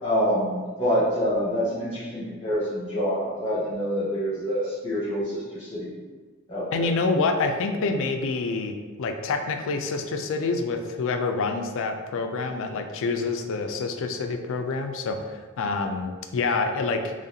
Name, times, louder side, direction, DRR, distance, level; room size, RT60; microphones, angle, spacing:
voice 1, 0.0-5.9 6.5-6.9, equal, 25° left, -13 dB, 1.3 m, -26 dB
voice 2, 6.7-17.1, left 3 dB, 65° left, 5 dB, 0.4 m, -27 dB
4.1 x 3.1 x 2.7 m, 1.4 s
head